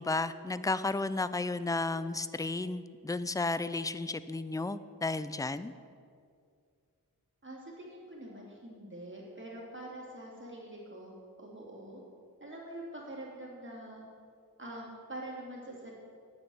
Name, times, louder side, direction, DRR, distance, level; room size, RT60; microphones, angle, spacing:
voice 1, 0.0-5.7, left 3 dB, 10° left, 14 dB, 0.3 m, -33 dB
voice 2, 7.4-12.0 12.4-14.1 14.6-15.9, right 1 dB, 30° right, -4 dB, 2.8 m, -45 dB
9.0 x 6.9 x 7.8 m, 2.3 s
wide cardioid pair, 45°, 37 cm